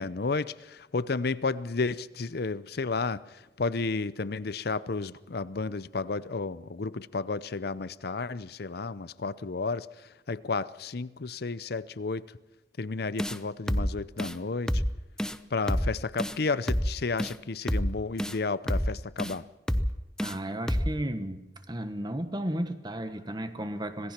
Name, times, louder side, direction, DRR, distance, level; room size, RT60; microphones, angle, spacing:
voice 1, 0.0-12.4 12.8-14.8 15.5-19.5, left 4 dB, 60° left, 17 dB, 0.7 m, -32 dB
sound 1, 13.2-13.4 13.7-13.9 14.2-14.4 14.7-14.9 15.2-15.4 15.7-15.9 16.2-16.4 16.7-16.9 17.2-17.3 17.7-17.9 18.2-18.4 18.7-18.9 19.2-19.4 19.7-19.9 20.2-20.4 20.7-20.9, equal, 5° left, 0.6 m, -27 dB
voice 2, 20.2-24.1, right 1 dB, 25° right, 9 dB, 1.3 m, -34 dB
26.0 x 17.5 x 6.0 m, 1.0 s
head